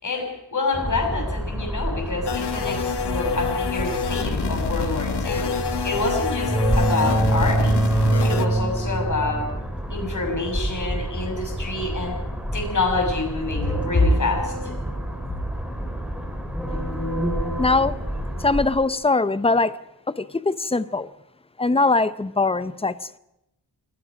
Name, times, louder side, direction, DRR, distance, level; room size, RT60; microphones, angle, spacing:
voice 1, 0.0-7.8 8.2-9.5 9.9-12.2 12.5-14.5, left 2 dB, 45° left, 6.3 m, -26 dB
sound 1, 0.7-18.7, right 1 dB, 5° right, 3.1 m, -27 dB
sound 2, 2.3-8.5, left 6 dB, 70° left, 1.4 m, -27 dB
voice 2, 17.6-18.0 18.4-19.8 20.1-21.1 21.6-23.2, left 3 dB, 15° left, 0.7 m, -22 dB
28.5 x 18.5 x 5.2 m
wide cardioid pair, 125°, 41 cm